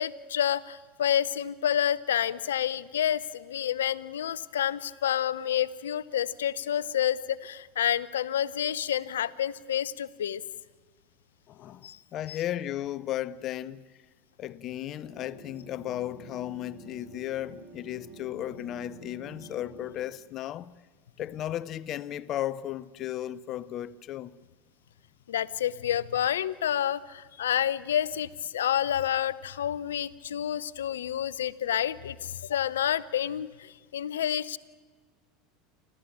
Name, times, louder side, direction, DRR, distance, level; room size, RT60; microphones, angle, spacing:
voice 1, 0.0-10.4 11.8-12.0 12.3-12.4 25.3-34.6, left 10 dB, 75° left, 0.7 m, -29 dB
voice 2, 11.5-13.9 14.4-20.7 21.2-24.3, left 12 dB, 45° left, 0.7 m, -35 dB
sound 1, 15.0-20.0, right 3 dB, 50° right, 6.0 m, -49 dB
28.0 x 13.5 x 8.7 m
hypercardioid pair, 80°, 0 cm